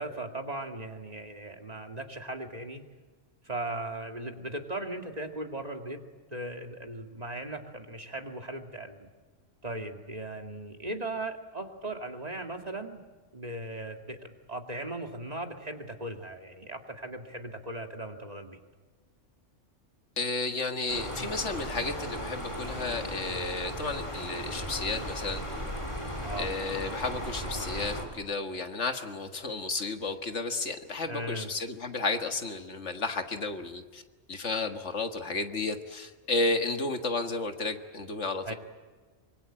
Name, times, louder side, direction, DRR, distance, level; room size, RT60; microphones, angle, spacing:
voice 1, 0.0-2.8 3.4-6.0 6.3-9.1 9.6-13.0 13.3-18.6 26.2-26.5 31.1-31.5 38.5-38.6, right 1 dB, 30° right, 4 dB, 2.3 m, -38 dB
voice 2, 20.2-25.4 26.4-34.0 34.3-38.5, left 3 dB, 65° left, 6 dB, 2.0 m, -32 dB
sound 1, 20.9-28.1, equal, 25° left, 4.4 m, -36 dB
25.0 x 24.0 x 8.9 m, 1.4 s
omnidirectional pair, 1.3 m